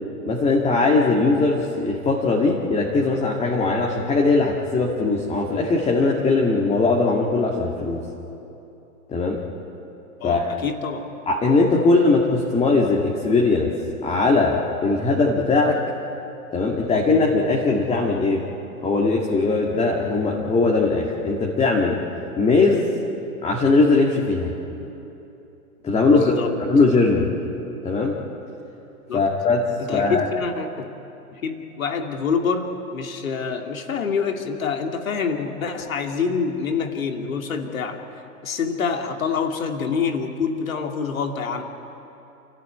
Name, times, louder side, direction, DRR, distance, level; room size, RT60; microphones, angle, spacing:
voice 1, 0.3-8.0 9.1-9.4 10.2-10.5 11.3-13.7 14.0-15.8 16.5-18.5 18.8-22.0 22.4-22.9 23.4-24.5 25.8-26.4 26.7-27.3 27.8-28.2 29.1-29.6 29.9-30.3, left 3 dB, 15° left, -2 dB, 2.1 m, -20 dB
voice 2, 10.2-11.1 26.1-26.5 29.1-29.3 29.8-30.9 31.3-38.0 38.4-41.6, left 5 dB, 65° left, 4 dB, 2.7 m, -26 dB
29.0 x 14.5 x 8.7 m, 2.9 s
figure-of-eight pair, 115°, 45 cm